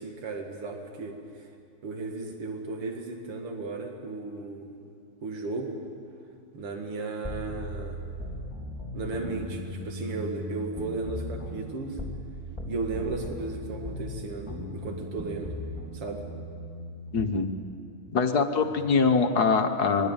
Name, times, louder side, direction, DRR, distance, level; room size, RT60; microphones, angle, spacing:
voice 1, 0.0-1.5 1.8-4.7 5.2-5.8 6.5-8.0 8.9-12.0 12.7-15.5 15.9-16.2 18.6-18.7, right 3 dB, 85° right, 2 dB, 2.9 m, -35 dB
sound 1, 7.2-12.3 12.6-17.3, left 1 dB, ahead, 3.1 m, -38 dB
voice 2, 17.1-17.5 18.1-20.1, left 5 dB, 50° left, 6 dB, 1.6 m, -23 dB
26.0 x 21.5 x 9.0 m, 2.4 s
omnidirectional pair, 2.4 m